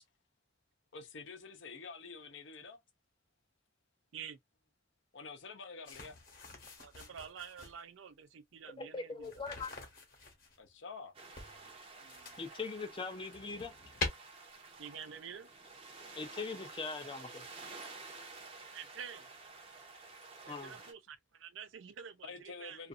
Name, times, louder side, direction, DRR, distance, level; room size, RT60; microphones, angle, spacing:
voice 1, 0.9-2.8 5.1-6.3 10.6-11.1 22.2-22.9, left 4 dB, 65° left, 0.6 m, -48 dB
sound 1, 5.8-7.8 9.2-10.6 11.3-12.6 13.0-14.1, left 3 dB, 45° left, 1.0 m, -44 dB
voice 2, 6.8-9.3 12.0-12.4 14.8-15.5 18.7-19.3 20.4-22.8, right 7 dB, 70° right, 0.4 m, -48 dB
voice 3, 8.8-9.7 12.4-13.7 16.2-17.5 20.5-20.7 22.8-22.9, left 4 dB, 25° left, 0.5 m, -41 dB
sound 2, 11.1-20.9, right 3 dB, 30° right, 0.7 m, -51 dB
2.5 x 2.5 x 2.4 m
head